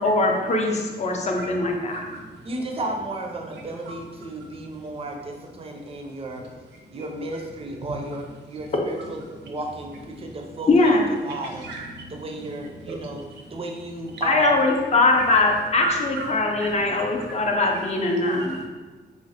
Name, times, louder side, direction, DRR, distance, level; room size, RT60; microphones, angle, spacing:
voice 1, 0.0-2.0 10.7-11.1 14.2-18.6, left 2 dB, 40° left, 1 dB, 0.4 m, -21 dB
voice 2, 1.1-1.6 1.9-2.3 3.5-3.9 4.6-4.7 7.3-7.4 7.7-8.0 8.5-8.7 9.4-9.5 10.1-10.3 11.4-13.4 15.1-15.3 15.8-17.8 18.1-18.7, right 3 dB, 85° right, 0 dB, 0.5 m, -36 dB
voice 3, 2.4-6.4 6.9-10.8 11.2-11.7 12.1-13.2 13.5-14.6, right 1 dB, 35° right, 2 dB, 0.4 m, -33 dB
3.1 x 2.0 x 2.7 m, 1.3 s
wide cardioid pair, 110°, 18 cm